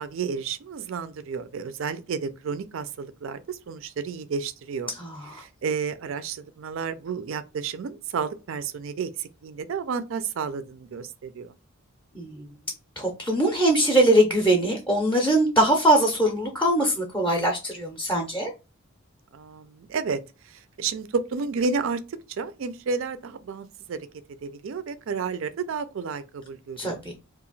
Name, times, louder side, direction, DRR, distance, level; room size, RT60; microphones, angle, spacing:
voice 1, 0.0-4.9 5.3-11.5 19.3-24.1 24.4-27.0, right 5 dB, 65° right, 0.4 m, -31 dB
voice 2, 5.0-5.4 12.1-12.5 13.0-18.5 26.8-27.1, right 1 dB, 10° left, 0.5 m, -22 dB
2.8 x 2.5 x 3.9 m
head